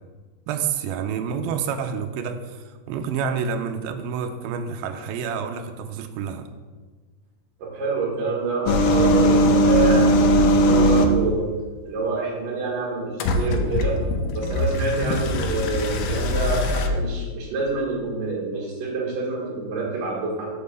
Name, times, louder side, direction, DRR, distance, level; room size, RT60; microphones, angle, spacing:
voice 1, 0.5-6.5, right 6 dB, 80° right, 7 dB, 2.4 m, -28 dB
voice 2, 7.6-11.5 11.8-14.0 14.3-20.5, right 4 dB, 65° right, -3 dB, 3.3 m, -27 dB
sound 1, 8.7-11.2 13.2-16.9, equal, 75° left, 2.2 m, -20 dB
7.4 x 4.7 x 6.6 m, 1.3 s
omnidirectional pair, 4.3 m